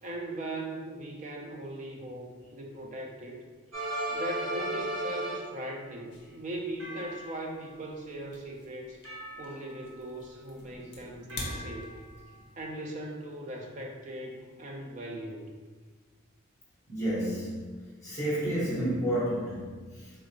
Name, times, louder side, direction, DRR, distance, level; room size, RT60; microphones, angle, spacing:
voice 1, 0.0-3.4 4.1-9.0 9.4-12.0 12.6-15.5, right 1 dB, 35° right, 1 dB, 0.4 m, -39 dB
sound 1, 3.7-5.7 6.8-7.7 9.0-10.0 11.3-12.2, right 1 dB, 70° right, 1.0 m, -36 dB
sound 2, 6.1-12.5, left 2 dB, 50° left, 0.6 m, -46 dB
voice 2, 16.9-20.1, right 1 dB, 15° left, -8 dB, 1.2 m, -31 dB
3.7 x 2.4 x 2.8 m, 1.4 s
head